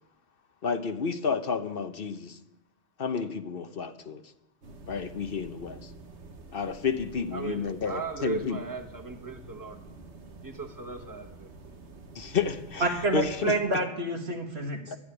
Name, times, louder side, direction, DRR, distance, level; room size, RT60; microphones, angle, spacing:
voice 1, 0.6-2.4 3.0-4.2 4.9-5.9 6.5-8.6 12.1-13.5 14.9-15.0, left 5 dB, 60° left, 1.0 m, -31 dB
sound 1, 4.6-13.5, right 2 dB, 85° right, 1.7 m, -48 dB
voice 2, 7.3-9.8 10.4-11.5, right 4 dB, 20° right, 1.4 m, -37 dB
voice 3, 12.8-15.0, right 2 dB, 65° right, 2.0 m, -28 dB
12.5 x 9.7 x 9.8 m
omnidirectional pair, 1.1 m